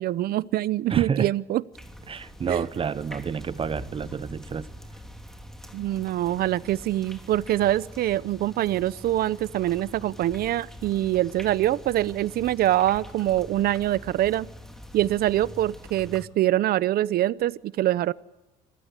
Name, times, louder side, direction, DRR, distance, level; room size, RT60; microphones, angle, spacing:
voice 1, 0.0-1.6 2.5-2.6 5.7-14.5 14.9-18.1, right 14 dB, 65° right, 19 dB, 0.8 m, -24 dB
voice 2, 0.9-1.3 2.1-4.7, right 6 dB, 35° right, 16 dB, 0.7 m, -29 dB
sound 1, 1.7-16.2, equal, ahead, 2.9 m, -44 dB
26.0 x 16.0 x 9.6 m, 1.0 s
cardioid pair, 110°, 17 cm